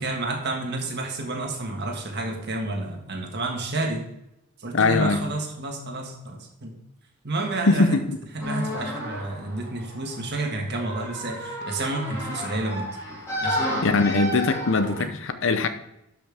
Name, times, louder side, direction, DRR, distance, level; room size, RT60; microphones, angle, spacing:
voice 1, 0.0-4.1 4.6-6.8 7.2-7.9 8.3-12.9 13.4-13.8, right 2 dB, 50° right, 2 dB, 1.6 m, -30 dB
voice 2, 4.7-5.2 7.7-8.2 13.8-15.7, left 3 dB, 60° left, 10 dB, 0.7 m, -21 dB
sound 1, 8.4-15.1, equal, 15° left, 2.9 m, -32 dB
12.0 x 5.7 x 3.5 m, 0.84 s
head